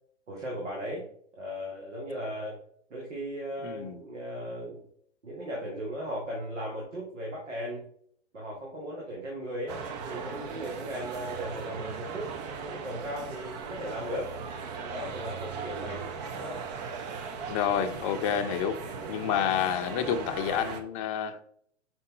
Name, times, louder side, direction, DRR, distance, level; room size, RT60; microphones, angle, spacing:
voice 1, 0.3-1.1 1.4-2.6 2.9-4.8 5.2-7.8 8.3-14.3 14.8-16.1 16.4-16.6 18.9-19.4, equal, 75° right, -3 dB, 2.4 m, -37 dB
voice 2, 3.6-4.0 17.5-18.8 19.1-21.4, left 8 dB, 30° left, 7 dB, 0.7 m, -29 dB
sound 1, 9.7-20.8, right 5 dB, 35° right, 0.9 m, -38 dB
5.8 x 5.4 x 3.8 m, 0.63 s
hypercardioid pair, 125°, 36 cm